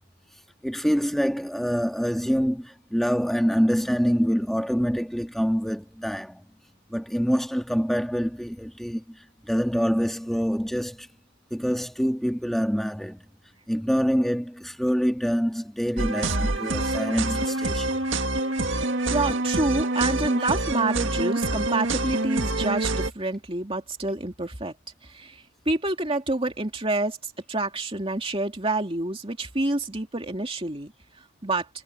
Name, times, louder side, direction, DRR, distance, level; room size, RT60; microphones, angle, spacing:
voice 1, 0.6-6.4 6.9-11.1 11.5-13.2 13.7-18.0, equal, ahead, 2.9 m, -25 dB
sound 1, 16.0-23.1, right 2 dB, 60° right, 2.1 m, -26 dB
voice 2, 19.1-24.7 25.0-30.9 31.4-31.7, right 2 dB, 25° right, 2.8 m, -28 dB
head